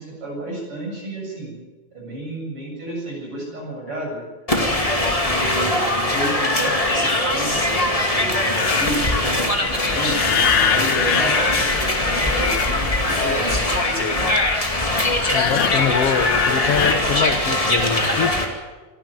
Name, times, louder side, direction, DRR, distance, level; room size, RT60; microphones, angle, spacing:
voice 1, 0.0-1.5 1.9-4.2 4.9-7.6 8.1-14.2, right 1 dB, 45° right, -1 dB, 8.6 m, -32 dB
sound 1, 4.5-18.4, left 1 dB, 15° left, 2.0 m, -21 dB
sound 2, 8.6-17.0, left 9 dB, 85° left, 2.6 m, -25 dB
voice 2, 15.3-18.4, left 6 dB, 60° left, 6 dB, 2.0 m, -24 dB
26.0 x 11.5 x 9.2 m, 1.2 s
omnidirectional pair, 3.4 m